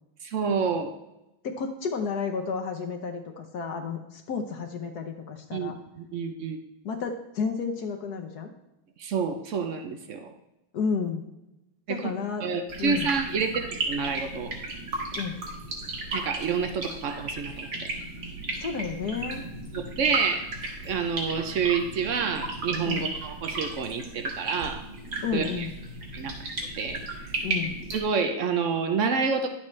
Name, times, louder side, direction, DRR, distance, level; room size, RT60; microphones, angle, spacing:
voice 1, 0.2-0.9 5.5-6.6 9.0-10.3 11.9-12.0 12.4-14.5 16.1-17.7 19.7-20.4 20.8-24.8 25.3-25.7 26.1-27.3 27.9-29.5, right 5 dB, 80° right, 6 dB, 0.6 m, -28 dB
voice 2, 1.4-5.8 6.8-8.5 10.7-11.3 11.9-12.5 12.8-13.1 15.2-15.4 18.6-19.5 22.8-23.1 25.2-25.7 27.4-27.8, left 5 dB, 60° left, 4 dB, 1.2 m, -31 dB
sound 1, 12.7-28.0, right 2 dB, 55° right, 2.2 m, -35 dB
10.5 x 7.5 x 3.2 m, 0.94 s
omnidirectional pair, 2.2 m